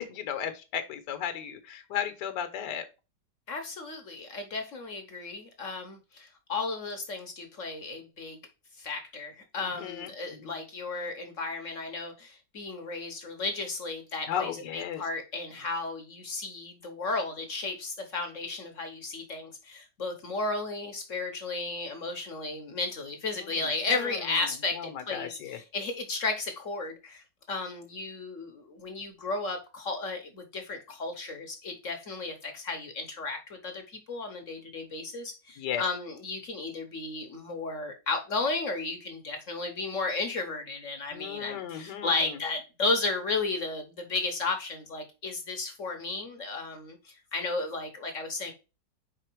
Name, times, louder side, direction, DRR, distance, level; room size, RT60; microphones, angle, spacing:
voice 1, 0.1-2.8 9.6-10.6 14.3-15.0 23.4-24.3 24.7-25.6 35.6-35.8 41.1-42.4, left 8 dB, 70° left, 8 dB, 1.5 m, -35 dB
voice 2, 3.5-8.4 8.8-48.5, left 3 dB, 50° left, 5 dB, 1.2 m, -34 dB
5.0 x 4.2 x 4.5 m, 0.29 s
omnidirectional pair, 2.0 m